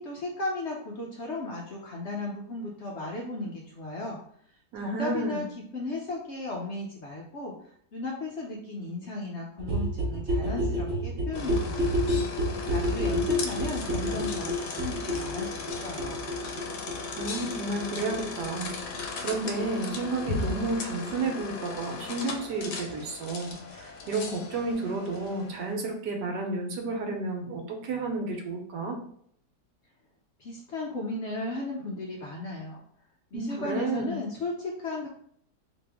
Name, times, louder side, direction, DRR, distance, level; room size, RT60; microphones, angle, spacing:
voice 1, 0.0-4.2 4.8-12.0 12.6-16.2 30.4-32.8 33.3-35.1, left 2 dB, 60° left, -2 dB, 0.7 m, -35 dB
voice 2, 4.7-5.5 17.2-29.0 33.3-34.2, right 3 dB, 80° right, 2 dB, 1.4 m, -31 dB
sound 1, 9.6-21.1 21.4-21.5 21.7-21.8 22.0-22.1 22.3-22.4 22.6-22.7 22.9-23.0, equal, 55° right, 1.0 m, -30 dB
sound 2, 11.3-25.7, left 4 dB, 80° left, 1.2 m, -37 dB
3.4 x 2.9 x 3.4 m, 0.64 s
omnidirectional pair, 1.8 m